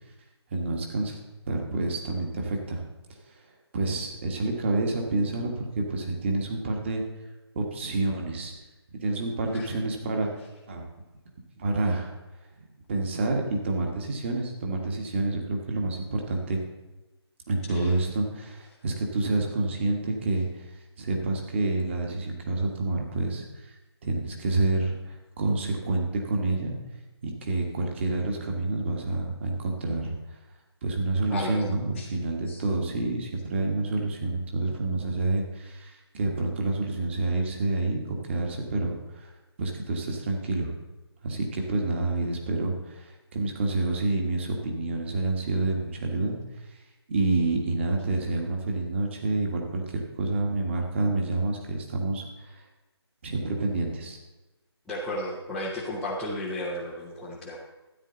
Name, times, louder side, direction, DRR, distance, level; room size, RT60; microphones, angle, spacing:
voice 1, 0.5-1.2 1.5-2.8 3.3-3.4 3.7-7.0 7.5-8.5 8.9-10.3 10.7-10.8 11.6-12.1 12.6-16.6 17.5-20.6 21.0-23.7 24.0-26.7 27.2-30.1 30.8-39.3 39.6-40.7 41.2-46.3 46.7-46.8 47.1-52.6 53.2-54.2, right 2 dB, 25° right, 2 dB, 1.6 m, -28 dB
voice 2, 31.3-31.6 32.0-32.1 32.5-32.6 54.9-57.6, left 1 dB, ahead, -11 dB, 0.5 m, -33 dB
13.0 x 9.4 x 4.0 m, 1.1 s
figure-of-eight pair, 160°, 14 cm